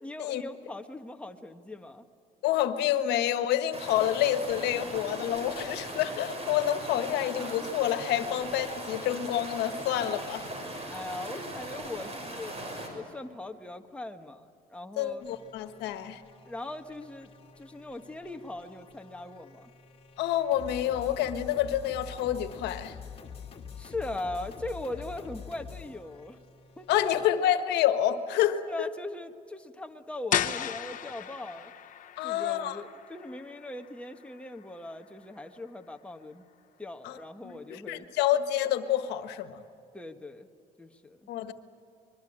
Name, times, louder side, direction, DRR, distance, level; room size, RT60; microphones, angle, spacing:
voice 1, 0.0-2.0 10.9-12.5 12.9-15.2 16.4-19.7 23.8-26.4 26.8-27.3 28.7-31.7 32.2-36.4 36.8-38.1 39.9-40.5 40.8-41.2, left 2 dB, 5° left, 5 dB, 1.5 m, -40 dB
voice 2, 2.4-10.4 15.0-16.2 20.2-22.9 26.9-28.6 32.2-32.8 37.0-37.2 37.4-39.6 41.3-41.5, left 11 dB, 85° left, 10 dB, 1.4 m, -28 dB
sound 1, 3.7-12.9, right 1 dB, 35° right, 6.1 m, -39 dB
sound 2, 15.2-27.3, left 6 dB, 35° left, 2.7 m, -47 dB
sound 3, 30.3-35.9, left 10 dB, 50° left, 1.2 m, -36 dB
25.0 x 22.5 x 8.8 m, 2.5 s
cardioid pair, 110°, 17 cm